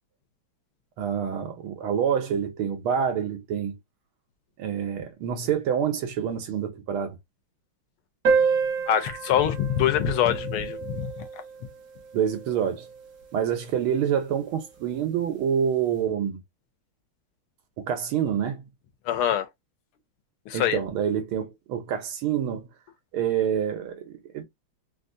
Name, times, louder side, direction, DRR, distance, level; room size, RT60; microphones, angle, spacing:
voice 1, 1.0-3.8 4.6-7.2 12.1-12.9 13.3-16.4 17.8-18.6 20.5-22.7 23.1-24.4, right 8 dB, 80° right, 1.8 m, -27 dB
sound 1, 8.2-13.2, right 5 dB, 50° right, 1.4 m, -29 dB
voice 2, 8.9-11.1 19.1-19.5 20.5-20.8, left 10 dB, 90° left, 1.6 m, -24 dB
4.1 x 2.6 x 2.5 m
omnidirectional pair, 2.3 m